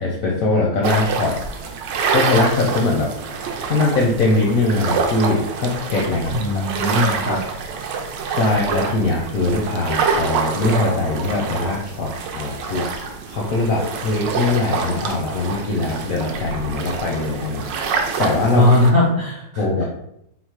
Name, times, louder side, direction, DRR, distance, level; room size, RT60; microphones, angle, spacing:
voice 1, 0.0-1.4 2.1-3.1 3.7-6.6 8.3-12.9 13.3-17.9 18.2-18.7 19.6-19.8, left 2 dB, 70° left, -1 dB, 0.8 m, -21 dB
sound 1, 0.8-18.9, right 5 dB, 75° right, 1.2 m, -26 dB
voice 2, 6.3-7.4 18.5-19.8, left 1 dB, 45° right, -7 dB, 0.7 m, -18 dB
4.0 x 2.1 x 4.5 m, 0.77 s
omnidirectional pair, 2.0 m